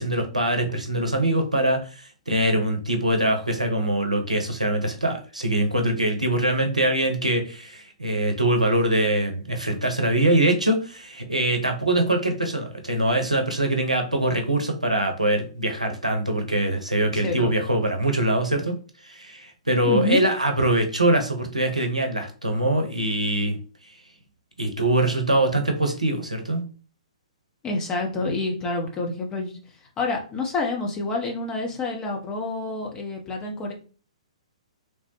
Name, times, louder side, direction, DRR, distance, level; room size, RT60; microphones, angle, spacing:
voice 1, 0.0-18.7 19.0-23.6 24.6-26.6, right 1 dB, 85° right, 4 dB, 0.6 m, -23 dB
voice 2, 17.1-17.5 19.8-20.2 27.6-29.6 30.0-33.7, left 3 dB, 20° left, 1 dB, 0.6 m, -28 dB
3.2 x 2.1 x 2.9 m, 0.37 s
figure-of-eight pair, 120°, 4 cm